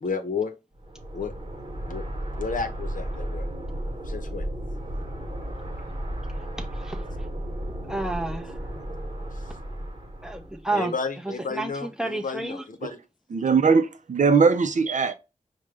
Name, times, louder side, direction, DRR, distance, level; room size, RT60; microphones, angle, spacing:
voice 1, 0.0-0.5 1.1-1.3 1.9-2.0 2.4-3.6 4.1-4.5 10.7-13.0, left 5 dB, 75° left, 0.7 m, -32 dB
sound 1, 0.8-10.6, right 1 dB, 35° right, 1.2 m, -34 dB
voice 2, 6.6-7.0 7.9-8.5 10.2-10.9 11.6-11.7 12.0-12.6, right 2 dB, 5° right, 0.6 m, -30 dB
voice 3, 13.3-15.1, right 5 dB, 65° right, 0.5 m, -20 dB
4.8 x 2.1 x 3.3 m
wide cardioid pair, 75°, 14 cm